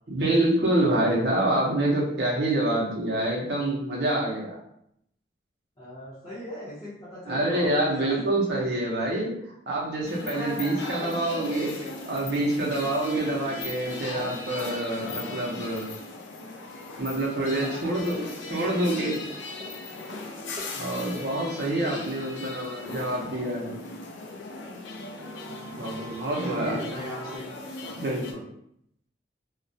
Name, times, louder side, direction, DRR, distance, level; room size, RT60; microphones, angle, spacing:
voice 1, 0.1-4.5 7.3-9.3 9.7-15.9 17.0-19.2 20.8-23.8 25.8-26.7 28.0-28.4, right 1 dB, 65° right, -3 dB, 0.7 m, -26 dB
voice 2, 5.8-8.3 17.4-18.5 20.7-21.2 25.5-26.1 26.4-28.1, equal, 20° left, -11 dB, 0.7 m, -40 dB
sound 1, 10.0-28.3, left 3 dB, 90° left, 0.4 m, -38 dB
sound 2, 18.0-18.5 18.8-20.8 21.1-21.5 24.5-24.6 24.8-27.4, right 3 dB, 25° right, 0.4 m, -44 dB
2.3 x 2.1 x 2.6 m, 0.74 s
head